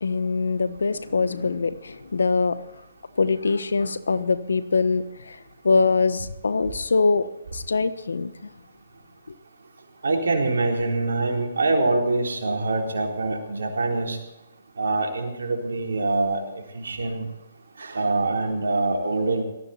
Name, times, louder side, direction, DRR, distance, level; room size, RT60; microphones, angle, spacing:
voice 1, 0.0-2.6 3.2-7.3 7.5-8.5, left 4 dB, 80° left, 1.2 m, -23 dB
voice 2, 10.0-14.2 14.8-17.3 17.8-19.4, right 2 dB, 80° right, 4.0 m, -24 dB
18.5 x 14.0 x 4.3 m
hypercardioid pair, 140°, 0 cm